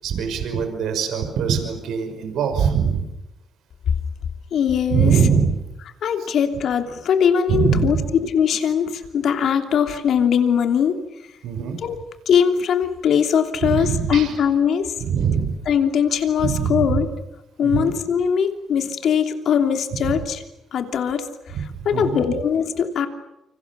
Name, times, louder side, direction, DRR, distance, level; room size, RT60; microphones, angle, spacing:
voice 1, 0.0-3.0 4.9-5.5 7.5-8.1 11.4-11.8 13.6-14.3 15.0-15.6 16.4-17.0 17.6-18.0 20.0-20.2 21.5-22.2, right 7 dB, 80° right, 6 dB, 5.7 m, -22 dB
voice 2, 4.5-5.1 6.0-11.0 11.8-12.0 12.3-14.9 15.7-17.1 17.6-20.4 20.7-21.5 21.8-23.1, left 7 dB, 65° left, 6 dB, 3.1 m, -21 dB
29.5 x 25.5 x 7.2 m, 0.89 s
cardioid pair, 90°, 0 cm